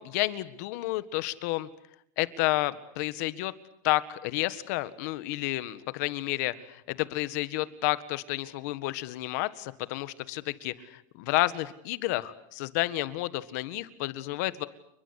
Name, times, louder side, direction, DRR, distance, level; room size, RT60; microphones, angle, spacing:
voice 1, 0.0-1.7 2.2-3.5 3.8-14.7, left 18 dB, 60° left, 14 dB, 1.7 m, -30 dB
29.5 x 22.5 x 8.3 m, 0.73 s
supercardioid pair, 175°, 10 cm